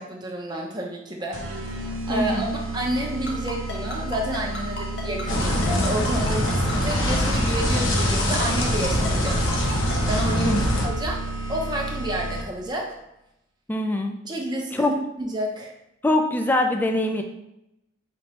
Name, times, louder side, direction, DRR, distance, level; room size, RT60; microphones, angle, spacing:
voice 1, 0.0-10.6 10.8-11.2 11.5-13.0 14.2-15.7, right 1 dB, 20° right, 0 dB, 0.6 m, -30 dB
sound 1, 1.3-12.7, right 1 dB, 85° right, 0.7 m, -32 dB
voice 2, 2.1-2.5 10.4-10.6 13.7-14.1 14.7-14.9 16.0-17.2, left 1 dB, 10° left, 4 dB, 0.3 m, -23 dB
Ringtone, 3.3-10.0, left 2 dB, 55° left, 0.9 m, -34 dB
sound 2, 5.3-10.9, left 1 dB, 85° left, 0.7 m, -23 dB
4.5 x 2.9 x 3.0 m, 0.84 s
head